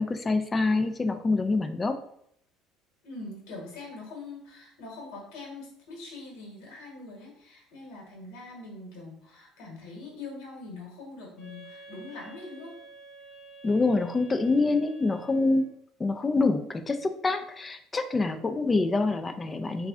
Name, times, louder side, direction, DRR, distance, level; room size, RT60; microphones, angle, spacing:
voice 1, 0.0-2.0 13.6-15.7 16.0-19.9, left 3 dB, 20° left, 9 dB, 0.3 m, -26 dB
voice 2, 3.0-12.7, left 3 dB, 80° left, -2 dB, 1.3 m, -43 dB
Wind instrument woodwind instrument, 11.4-15.8, right 3 dB, 45° left, 0.7 m, -49 dB
3.1 x 2.4 x 3.5 m, 0.71 s
cardioid pair, 130°, 0 cm